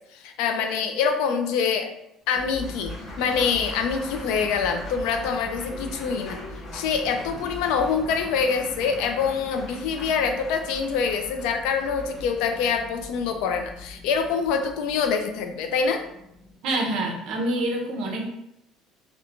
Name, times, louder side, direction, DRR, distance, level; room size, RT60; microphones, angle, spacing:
voice 1, 0.1-1.9 2.3-6.4 6.7-16.0, left 6 dB, 85° left, 6 dB, 0.3 m, -25 dB
Applause, 2.2-14.5, left 1 dB, 25° left, 0.6 m, -44 dB
sound 1, 2.3-16.6, left 1 dB, 25° right, 1.1 m, -42 dB
voice 2, 16.6-18.3, right 1 dB, 55° right, 0 dB, 0.6 m, -26 dB
2.9 x 2.1 x 2.4 m, 0.80 s
cardioid pair, 165°, 0 cm